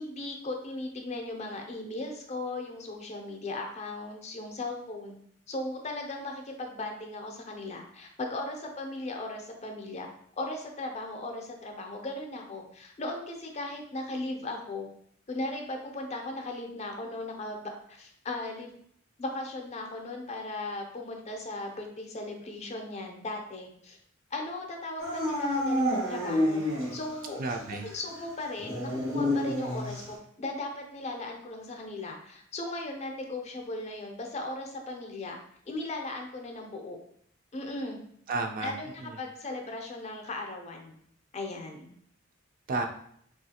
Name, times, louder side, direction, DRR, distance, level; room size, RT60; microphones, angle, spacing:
voice 1, 0.0-5.2 5.5-10.1 10.4-14.9 15.3-18.7 19.2-24.0 24.3-26.6 26.9-27.4 27.8-35.4 35.7-37.0 37.5-38.0 38.6-40.9 41.3-41.9, left 2 dB, 35° left, 3 dB, 0.5 m, -37 dB
Dog / Siren, 25.0-27.2 27.5-27.6 28.6-30.1, left 1 dB, 80° right, 0.9 m, -29 dB
voice 2, 27.4-27.8 38.3-39.2 42.7-42.9, right 3 dB, 45° right, 4 dB, 0.3 m, -32 dB
3.1 x 2.4 x 2.7 m, 0.66 s
head